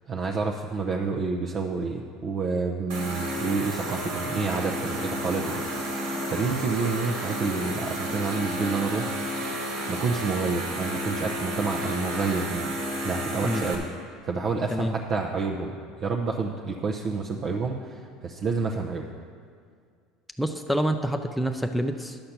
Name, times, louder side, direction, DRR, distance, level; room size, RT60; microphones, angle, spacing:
voice 1, 0.1-9.1 9.9-12.8 13.0-13.9 14.2-19.0, right 4 dB, 45° right, 0 dB, 0.7 m, -29 dB
sound 1, 2.9-13.7, equal, 80° right, 2.1 m, -31 dB
voice 2, 20.4-22.2, equal, ahead, 4 dB, 0.5 m, -27 dB
10.5 x 6.6 x 5.9 m, 2.1 s
supercardioid pair, 95°, 0 cm